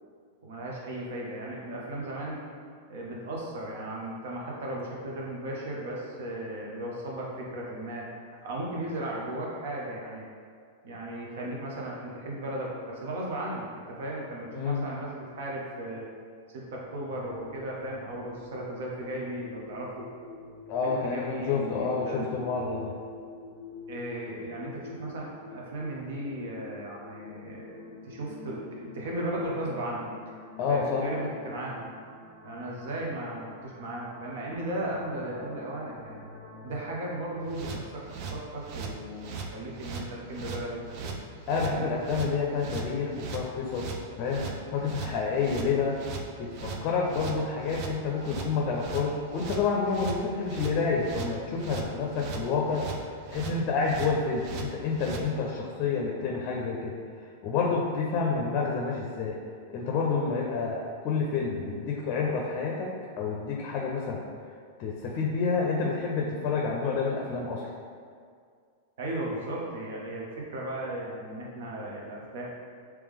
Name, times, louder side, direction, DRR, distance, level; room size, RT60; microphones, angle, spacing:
voice 1, 0.4-2.4 2.9-8.1 8.4-10.2 10.8-16.1 16.5-20.1 20.8-22.3 23.9-30.1 30.7-31.8 32.4-36.2 36.6-41.1 41.7-42.0 69.0-72.4, right 1 dB, 70° right, -3 dB, 0.9 m, -36 dB
voice 2, 14.5-14.8 20.7-22.9 30.6-31.0 41.5-44.4 44.7-46.0 46.4-52.8 53.3-56.9 57.4-59.4 59.7-64.2 64.8-67.7, left 5 dB, 40° left, -1 dB, 0.5 m, -29 dB
sound 1, 16.8-36.8, left 3 dB, 90° right, 1.2 m, -47 dB
sound 2, 37.5-55.3, right 5 dB, 45° right, 0.4 m, -38 dB
3.3 x 3.0 x 3.5 m, 2.1 s
hypercardioid pair, 135°, 0 cm